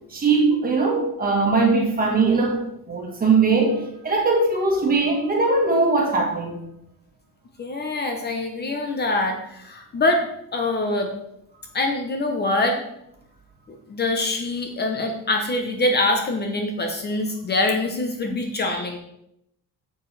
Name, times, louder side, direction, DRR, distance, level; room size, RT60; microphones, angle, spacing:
voice 1, 0.1-6.6, right 3 dB, 25° right, 0 dB, 1.6 m, -20 dB
voice 2, 7.6-10.2 10.5-11.1 11.7-12.8 13.9-19.0, left 2 dB, 30° left, 4 dB, 0.9 m, -24 dB
9.1 x 7.0 x 3.3 m, 0.79 s
cardioid pair, 170°, 33 cm